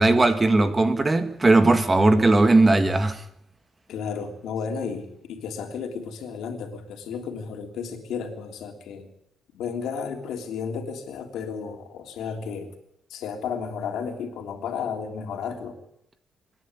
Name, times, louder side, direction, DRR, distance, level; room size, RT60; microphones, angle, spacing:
voice 1, 0.0-3.2, right 2 dB, 20° right, 1.7 m, -18 dB
voice 2, 3.9-9.1 9.5-12.7 13.1-15.8, left 6 dB, 85° left, 3.4 m, -33 dB
26.0 x 11.0 x 9.7 m
cardioid pair, 135°, 0 cm